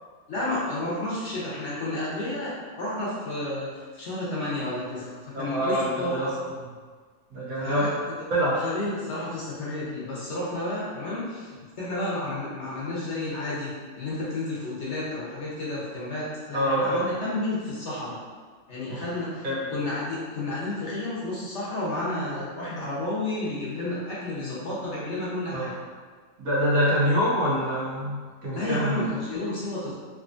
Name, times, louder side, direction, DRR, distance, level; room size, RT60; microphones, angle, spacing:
voice 1, 0.3-6.3 7.6-7.9 8.5-18.2 18.7-19.4 19.7-25.7 28.5-29.9, left 2 dB, 55° left, -7 dB, 1.1 m, -31 dB
voice 2, 5.3-6.3 7.3-7.9 8.3-8.6 16.5-17.0 18.9-19.0 19.4-19.6 25.5-25.7 26.4-29.1, equal, 75° right, -7 dB, 1.4 m, -25 dB
3.7 x 2.8 x 2.5 m, 1.5 s
omnidirectional pair, 1.5 m